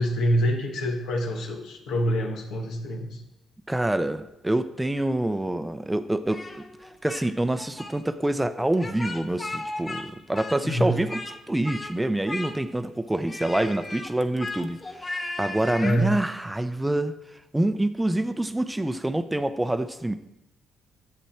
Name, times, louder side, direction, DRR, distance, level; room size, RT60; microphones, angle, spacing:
voice 1, 0.0-3.2 10.6-11.0 15.8-16.2, equal, 80° left, 2 dB, 1.5 m, -26 dB
voice 2, 3.7-6.7 7.0-11.2 11.5-17.1 17.5-20.2, right 1 dB, 10° right, 11 dB, 0.5 m, -26 dB
Speech, 6.3-7.3 7.5-7.9 8.7-10.1 10.3-11.4 11.6-11.9 12.3-12.9 13.3-16.0, left 2 dB, 25° left, 1.0 m, -36 dB
10.0 x 7.6 x 4.4 m, 0.90 s
cardioid pair, 90°, 0 cm